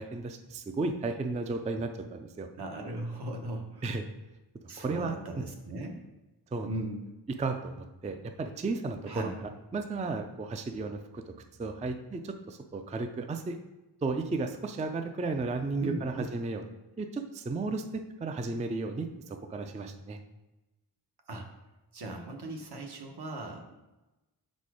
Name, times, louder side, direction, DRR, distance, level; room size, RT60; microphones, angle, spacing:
voice 1, 0.0-2.5 3.8-4.1 4.8-5.5 6.5-6.7 7.4-11.3 11.6-13.6 14.0-16.6 17.0-20.2, right 3 dB, 20° right, 6 dB, 0.3 m, -34 dB
voice 2, 2.6-3.8 4.7-6.0 6.6-7.0 9.1-9.4 15.8-16.3 21.3-21.5 21.9-23.7, right 1 dB, 70° right, 2 dB, 1.0 m, -38 dB
5.7 x 4.2 x 4.8 m, 1.0 s
wide cardioid pair, 145°, 40 cm